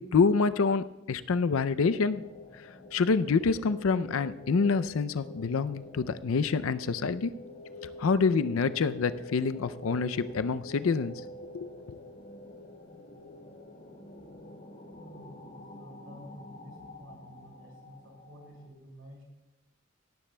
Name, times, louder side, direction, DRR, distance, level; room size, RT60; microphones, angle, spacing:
voice 1, 0.0-2.2 2.9-7.3 8.0-11.1 11.5-12.0, left 4 dB, 90° left, 13 dB, 0.5 m, -27 dB
sound 1, 1.8-18.7, left 2 dB, 45° left, 1.3 m, -47 dB
voice 2, 14.9-19.2, equal, 80° right, -1 dB, 5.0 m, -51 dB
17.5 x 12.5 x 2.2 m, 0.96 s
head